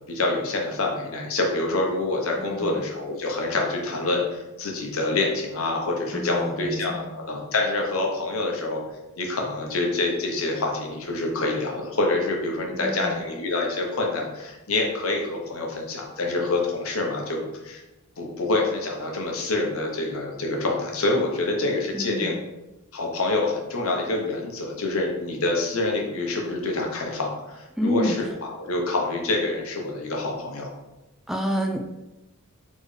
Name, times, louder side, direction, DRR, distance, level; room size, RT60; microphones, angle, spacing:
voice 1, 0.1-8.8 9.2-17.8 18.2-22.4 22.9-30.7, left 2 dB, 70° left, 0 dB, 0.9 m, -26 dB
voice 2, 2.4-2.8 6.1-7.1 12.7-13.2 21.9-22.4 27.8-28.2 31.3-31.8, equal, ahead, 2 dB, 0.3 m, -29 dB
4.3 x 3.1 x 3.2 m, 1.0 s
head